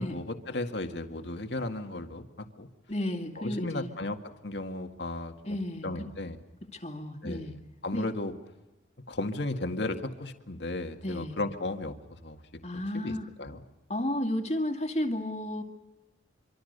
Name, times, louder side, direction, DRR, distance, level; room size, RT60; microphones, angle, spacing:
voice 1, 0.0-2.7 3.4-5.6 5.8-6.4 7.2-7.5 7.8-8.3 9.1-12.4 12.9-13.6, left 2 dB, 70° left, 6 dB, 1.9 m, -35 dB
voice 2, 2.9-3.9 5.5-6.1 6.7-7.5 7.9-8.1 11.0-11.4 12.6-13.3 13.9-15.6, left 1 dB, 35° left, 6 dB, 2.3 m, -32 dB
26.0 x 25.0 x 6.7 m, 1.1 s
head